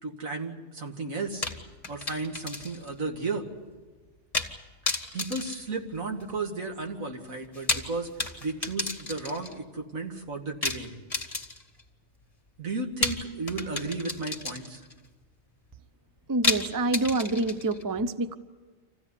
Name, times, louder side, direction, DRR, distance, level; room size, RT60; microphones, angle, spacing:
voice 1, 0.0-1.4 1.9-3.4 4.9-8.1 8.4-10.9 12.6-14.9, right 3 dB, 85° right, 2 dB, 2.6 m, -34 dB
sound 1, 1.4-2.9 3.2-3.3 4.3-4.6 4.9-6.4 7.4-9.6 10.6-11.8 13.0-14.9 16.4-17.8, left 3 dB, 25° left, 1.9 m, -32 dB
voice 2, 16.3-18.4, right 2 dB, 20° right, 12 dB, 0.6 m, -27 dB
26.5 x 15.5 x 9.9 m, 1.3 s
omnidirectional pair, 1.4 m